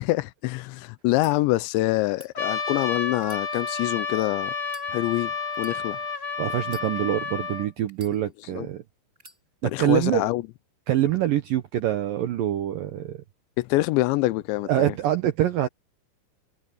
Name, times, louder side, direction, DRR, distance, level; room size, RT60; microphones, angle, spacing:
voice 1, 0.0-4.5 4.9-5.3 5.6-6.0 8.5-8.7 9.6-10.4 13.6-14.9, left 18 dB, 80° left, 2.9 m, -25 dB
sound 1, 1.2-1.3 2.0-2.3 3.1-4.1 4.6-4.9 5.5-5.8 6.6-7.3 7.9-8.6 9.2-9.4, right 1 dB, 15° right, 6.3 m, -50 dB
Trumpet, 2.4-7.7, left 5 dB, 25° left, 2.9 m, -30 dB
voice 2, 6.4-8.8 9.6-10.3 10.9-13.2 14.7-15.7, right 12 dB, 75° right, 2.1 m, -25 dB
omnidirectional pair, 5.4 m